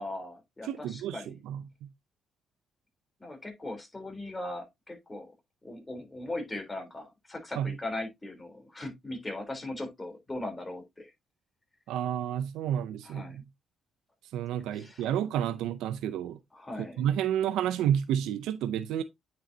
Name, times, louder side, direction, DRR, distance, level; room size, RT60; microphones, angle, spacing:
voice 1, 0.0-1.3 3.2-5.3 5.6-11.1 13.0-13.4 14.7-15.0 16.5-17.0, left 2 dB, 20° left, 3.5 m, -39 dB
voice 2, 0.6-1.9 7.6-7.7 11.9-13.4 14.3-16.4 17.0-19.0, right 10 dB, 90° right, 0.5 m, -30 dB
8.9 x 5.4 x 2.7 m
cardioid pair, 90°, 0 cm